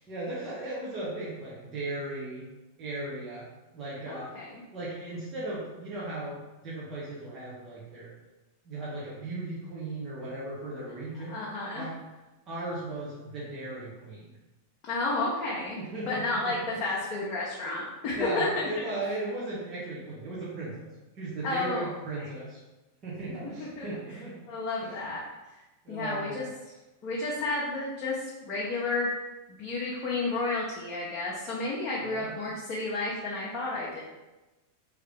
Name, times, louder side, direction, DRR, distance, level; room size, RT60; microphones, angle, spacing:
voice 1, 0.1-2.5 2.8-3.5 3.7-4.3 4.7-6.4 6.6-8.1 8.6-11.4 11.7-11.9 12.5-14.4 15.8-16.6 16.8-17.2 18.1-22.6 23.0-24.4 24.8-25.1 25.8-26.5 32.0-32.3, right 2 dB, 30° right, -9 dB, 1.2 m, -37 dB
voice 2, 4.1-4.6 11.3-11.8 14.9-15.8 16.1-18.5 21.4-21.9 22.2-22.3 23.6-23.9 24.5-25.2 25.9-26.4 27.0-29.1 29.6-34.0, left 3 dB, 35° left, -6 dB, 0.9 m, -31 dB
3.8 x 3.2 x 3.4 m, 1.1 s
figure-of-eight pair, 90°, 0 cm